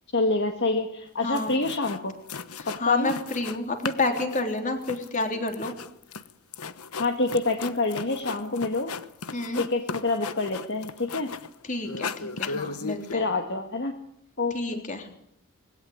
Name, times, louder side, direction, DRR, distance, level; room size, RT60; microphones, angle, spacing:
voice 1, 0.1-2.1 2.8-3.2 7.0-8.9 9.6-11.3 13.1-13.9 14.4-14.9, left 3 dB, 50° left, 4 dB, 1.9 m, -27 dB
sound 1, 1.1-1.2 1.3-2.0 2.3-3.6 3.8-11.5 11.8-13.1, left 5 dB, 75° left, 1.2 m, -36 dB
voice 2, 1.2-1.6 2.6-5.7 9.3-9.6 11.7-13.3 14.5-15.2, left 2 dB, 35° left, 5 dB, 3.6 m, -29 dB
21.0 x 17.0 x 9.7 m, 0.71 s
head